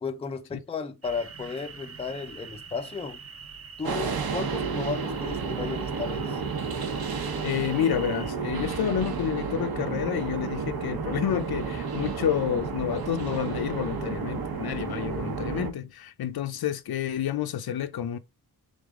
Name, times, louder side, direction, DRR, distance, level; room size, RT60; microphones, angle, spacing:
voice 1, 0.0-3.2 3.8-6.4, left 5 dB, 15° left, 0.4 m, -34 dB
sound 1, 1.0-8.3, right 5 dB, 40° right, 0.7 m, -44 dB
sound 2, 3.8-15.7, right 5 dB, 75° right, 1.0 m, -31 dB
voice 2, 7.4-18.2, left 9 dB, 75° left, 0.6 m, -29 dB
3.9 x 3.5 x 3.5 m
wide cardioid pair, 160°, 37 cm